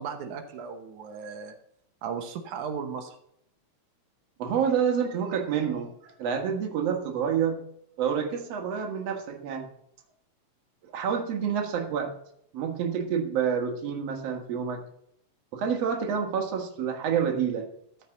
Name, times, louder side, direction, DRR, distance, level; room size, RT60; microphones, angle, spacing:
voice 1, 0.0-1.6 2.0-3.2, right 6 dB, 90° right, 5 dB, 2.5 m, -36 dB
voice 2, 4.4-7.6 8.0-9.7 10.9-12.1 12.5-14.8 15.5-17.7, right 7 dB, 60° right, 3 dB, 2.5 m, -28 dB
14.0 x 5.8 x 7.0 m, 0.72 s
omnidirectional pair, 3.3 m